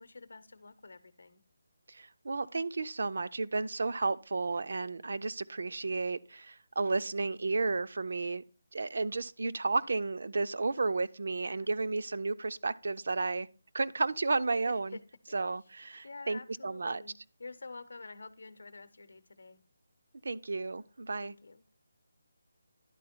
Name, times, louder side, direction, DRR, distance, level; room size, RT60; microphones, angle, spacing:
voice 1, 0.0-1.4 11.4-11.7 14.6-15.0 16.0-19.6 21.2-21.7, left 3 dB, 75° left, 0.7 m, -48 dB
voice 2, 1.9-8.4 8.7-13.5 13.7-15.0 15.3-17.0 20.2-21.3, right 3 dB, 65° right, 0.4 m, -32 dB
10.5 x 4.1 x 4.3 m
hypercardioid pair, 175°, 0 cm